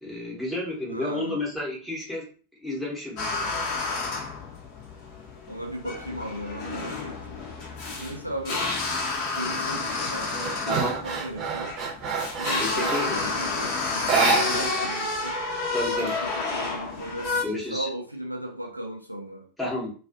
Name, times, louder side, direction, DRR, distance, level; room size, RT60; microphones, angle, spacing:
voice 1, 0.0-2.3 2.6-3.3 8.0-8.1 10.7-11.0 12.6-13.2 14.1-14.8 15.7-16.2 17.4-17.9 19.6-19.9, left 1 dB, ahead, -4 dB, 0.9 m, -31 dB
voice 2, 0.9-1.5 5.5-7.4 8.0-8.7 9.3-11.7 12.4-15.4 15.9-17.4 17.7-19.5, right 1 dB, 85° right, 0 dB, 0.5 m, -36 dB
sound 1, 3.2-17.4, left 3 dB, 40° left, 0.7 m, -30 dB
sound 2, 9.0-9.4 9.8-13.2 14.0-15.0 15.2-15.3 15.7-16.6, right 4 dB, 35° right, 0.8 m, -28 dB
2.4 x 2.4 x 2.4 m, 0.40 s
figure-of-eight pair, 90°, 0 cm